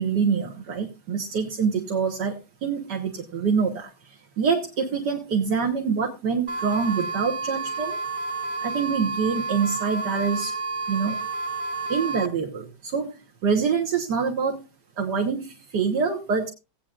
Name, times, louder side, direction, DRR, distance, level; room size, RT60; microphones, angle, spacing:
voice 1, 0.0-8.0 8.6-10.5 10.9-11.2 11.9-14.6 15.0-16.5, right 6 dB, 75° right, 0 dB, 2.0 m, -25 dB
sound 1, 6.5-12.3, right 3 dB, 45° right, 1.2 m, -30 dB
17.5 x 8.8 x 2.5 m, 0.27 s
omnidirectional pair, 1.8 m